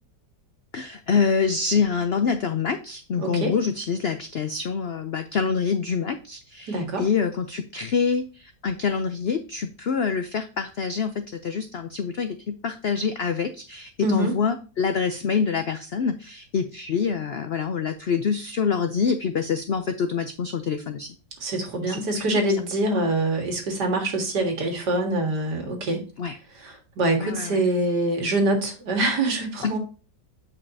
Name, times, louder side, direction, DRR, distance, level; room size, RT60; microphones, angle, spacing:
voice 1, 0.7-21.1 21.9-22.2 26.2-26.4 27.2-27.6 29.6-29.8, left 6 dB, 75° left, 8 dB, 0.5 m, -26 dB
voice 2, 3.2-3.5 6.7-7.1 14.0-14.3 21.4-26.0 26.6-29.8, right 1 dB, 75° right, 2 dB, 2.4 m, -24 dB
8.7 x 5.3 x 2.7 m, 0.35 s
omnidirectional pair, 1.8 m